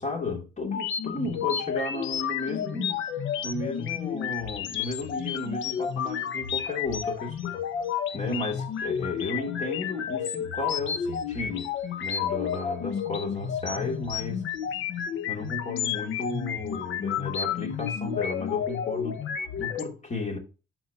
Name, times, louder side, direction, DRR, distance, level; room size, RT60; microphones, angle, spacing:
voice 1, 0.0-3.0 3.4-7.5 8.1-11.7 12.0-14.4 15.3-20.4, left 3 dB, 35° left, 2.6 m, -33 dB
sound 1, 0.6-19.8, left 8 dB, 80° left, 1.0 m, -31 dB
12.0 x 4.4 x 2.8 m
cardioid pair, 90°, 20 cm